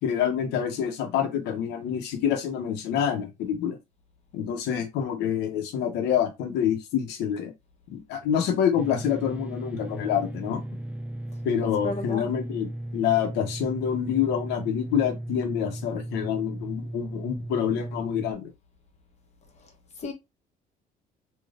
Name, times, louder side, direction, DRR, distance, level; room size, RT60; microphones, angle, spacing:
voice 1, 0.0-3.8 4.3-7.5 7.9-10.6 11.4-18.5, left 9 dB, 85° left, 0.9 m, -27 dB
sound 1, 8.8-18.3, right 1 dB, 10° right, 0.4 m, -36 dB
voice 2, 11.6-12.3 20.0-20.1, left 2 dB, 40° left, 1.2 m, -33 dB
3.3 x 3.0 x 2.5 m
cardioid pair, 110°, 17 cm